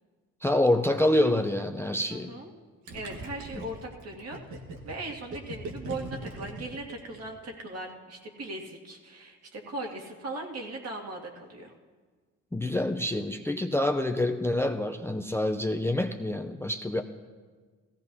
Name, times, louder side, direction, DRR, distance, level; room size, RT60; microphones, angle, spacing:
voice 1, 0.4-2.3 12.5-17.0, left 1 dB, 10° left, 6 dB, 0.5 m, -26 dB
voice 2, 2.1-2.5 2.9-4.4 4.8-11.7, right 2 dB, 55° right, 0 dB, 2.1 m, -39 dB
Gurgling, 2.9-7.6, right 1 dB, 80° right, 1.6 m, -40 dB
16.5 x 15.5 x 2.8 m, 1.5 s
cardioid pair, 90°, 30 cm